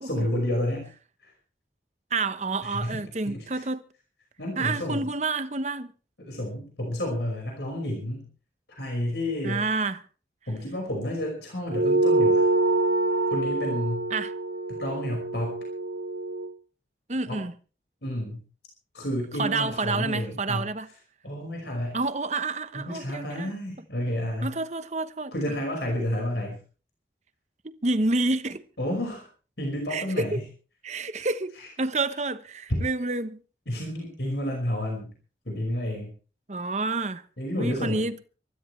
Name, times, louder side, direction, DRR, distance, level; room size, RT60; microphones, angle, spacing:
voice 1, 0.0-0.9 1.2-1.3 2.6-3.0 3.3-3.6 4.4-5.1 6.2-8.3 8.8-9.7 10.5-12.5 13.3-14.1 14.7-15.6 17.3-17.4 18.0-18.4 18.9-20.7 21.2-22.0 22.7-24.6 25.3-26.6 28.8-29.3 29.6-30.4 31.1-31.3 31.6-31.7 32.7-32.8 33.7-35.1 35.5-36.1 37.4-38.1, left 1 dB, 75° left, 5.4 m, -30 dB
voice 2, 2.1-3.8 4.6-5.9 9.4-10.0 14.1-14.3 17.1-17.5 19.4-20.9 21.9-23.5 24.4-25.3 27.6-28.6 29.9-30.4 30.8-33.4 36.5-37.2 37.6-38.2, right 3 dB, 40° right, 1.0 m, -29 dB
sound 1, 11.7-16.5, right 2 dB, 65° right, 0.8 m, -25 dB
25.0 x 13.5 x 3.3 m
head